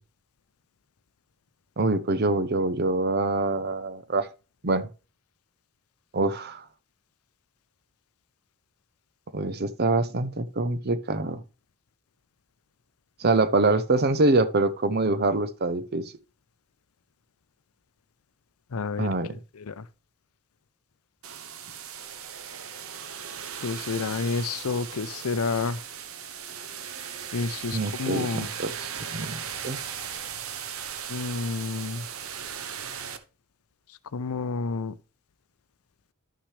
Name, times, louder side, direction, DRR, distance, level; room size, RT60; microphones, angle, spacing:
voice 1, 1.8-4.3 4.6-4.9 6.1-6.6 9.3-11.4 13.2-16.1 19.0-19.3 27.7-29.8, right 2 dB, 45° right, 0.7 m, -25 dB
voice 2, 18.7-19.1 19.7-19.8 23.6-25.8 27.3-28.5 31.1-32.0 34.1-34.9, left 4 dB, 80° left, 0.6 m, -29 dB
sound 1, 21.2-33.2, right 8 dB, 70° right, 1.0 m, -37 dB
11.5 x 6.0 x 3.3 m
head